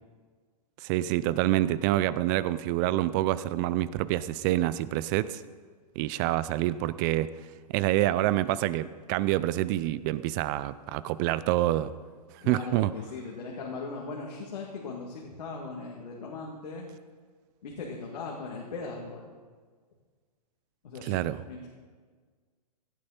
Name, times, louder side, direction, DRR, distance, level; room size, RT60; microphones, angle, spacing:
voice 1, 0.8-5.4 6.0-7.3 7.7-11.9 12.3-12.9 21.0-21.4, right 15 dB, 30° right, 16 dB, 0.4 m, -27 dB
voice 2, 12.4-16.9 17.6-19.3 20.8-21.2 21.5-21.6, left 4 dB, 70° left, -2 dB, 2.5 m, -39 dB
16.5 x 9.7 x 4.3 m, 1.5 s
hypercardioid pair, 130°, 21 cm